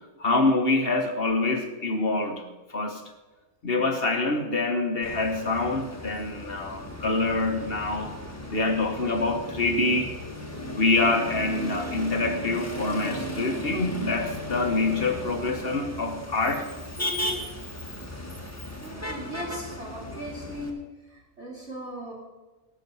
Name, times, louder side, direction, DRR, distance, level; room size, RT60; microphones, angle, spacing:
voice 1, 0.2-3.0 3.6-8.1 8.5-10.1 10.8-16.7, left 2 dB, 40° left, 5 dB, 1.2 m, -26 dB
Motor vehicle (road), 5.0-20.7, left 1 dB, 10° left, 1.4 m, -36 dB
voice 2, 18.8-22.1, equal, 45° right, -4 dB, 2.7 m, -38 dB
19.0 x 6.5 x 5.5 m, 1.2 s
omnidirectional pair, 1.7 m